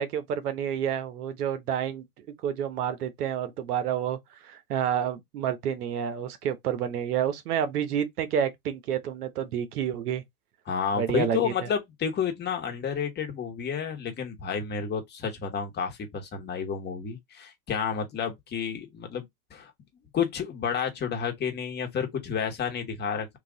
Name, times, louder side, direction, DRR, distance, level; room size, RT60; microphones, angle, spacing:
voice 1, 0.0-2.0 2.4-4.2 4.4-10.2 11.0-11.5, right 9 dB, 80° right, 1.1 m, -29 dB
voice 2, 10.7-19.7 20.1-23.4, left 7 dB, 20° left, 1.3 m, -30 dB
3.8 x 2.7 x 3.9 m
supercardioid pair, 125°, 45 cm